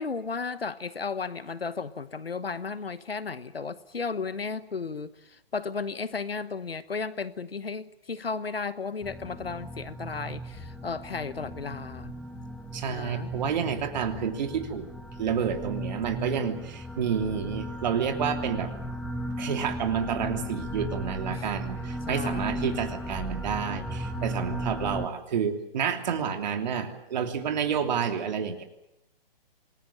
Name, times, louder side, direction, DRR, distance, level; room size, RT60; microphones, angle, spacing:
voice 1, 0.0-12.1 12.9-13.3 21.3-21.5 22.1-22.8, left 4 dB, 85° left, 15 dB, 1.1 m, -34 dB
sound 1, 9.0-25.1, right 1 dB, ahead, 1.2 m, -36 dB
voice 2, 12.7-14.9 15.2-18.7 19.4-28.6, right 7 dB, 50° right, 5 dB, 3.1 m, -29 dB
27.0 x 20.5 x 7.5 m, 0.84 s
figure-of-eight pair, 130°, 29 cm